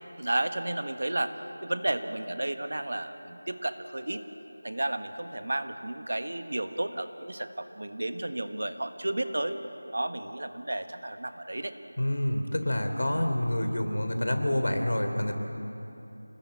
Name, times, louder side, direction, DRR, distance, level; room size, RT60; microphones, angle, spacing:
voice 1, 0.2-1.3 1.6-4.2 4.6-9.6 9.9-11.7, right 1 dB, 50° right, 8 dB, 1.5 m, -32 dB
voice 2, 12.0-15.3, left 1 dB, 60° left, 6 dB, 3.3 m, -27 dB
28.5 x 20.0 x 8.6 m, 3.0 s
figure-of-eight pair, 180°, 0 cm